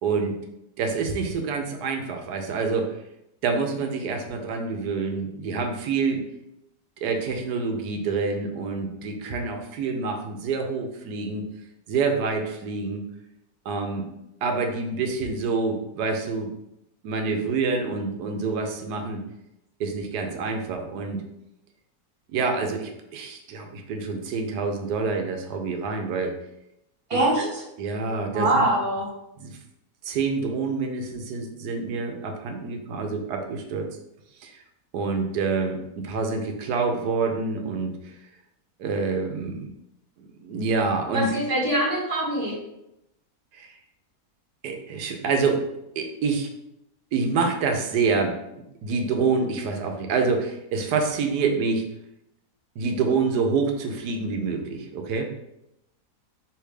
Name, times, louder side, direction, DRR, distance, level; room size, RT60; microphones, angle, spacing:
voice 1, 0.0-0.4 0.8-3.0 3.4-6.2 7.0-11.4 11.9-13.0 13.6-14.0 14.4-16.5 17.0-19.2 19.8-21.2 22.3-26.3 27.1-27.5 27.8-28.7 29.4-29.5 30.0-33.9 34.4-34.6 34.9-38.1 38.8-39.7 40.4-41.3 43.5-43.7 44.6-45.7 46.0-46.5 47.1-48.4 48.8-51.8 52.8-55.3, right 4 dB, 85° right, 4 dB, 1.3 m, -27 dB
voice 2, 27.1-27.6 28.3-29.0 41.1-42.6, right 1 dB, 20° right, -4 dB, 1.3 m, -23 dB
3.4 x 3.1 x 4.8 m, 0.84 s
omnidirectional pair, 1.7 m